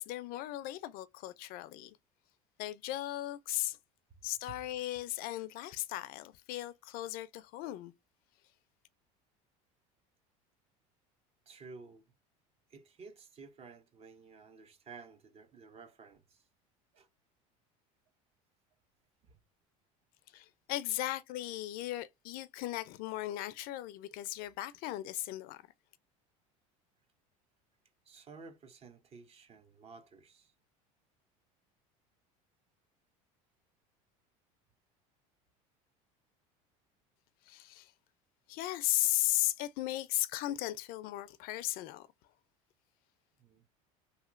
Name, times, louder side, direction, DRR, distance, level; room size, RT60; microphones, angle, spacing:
voice 1, 0.0-2.0 2.6-3.8 4.2-7.9 20.3-25.6 37.5-37.9 38.5-42.1, left 15 dB, 60° left, 0.4 m, -36 dB
voice 2, 11.5-12.0 12.7-16.4 16.9-17.1 19.3-19.4 28.1-30.5 43.4-43.6, right 4 dB, 35° right, 0.7 m, -53 dB
2.9 x 2.8 x 2.4 m
supercardioid pair, 110°, 17 cm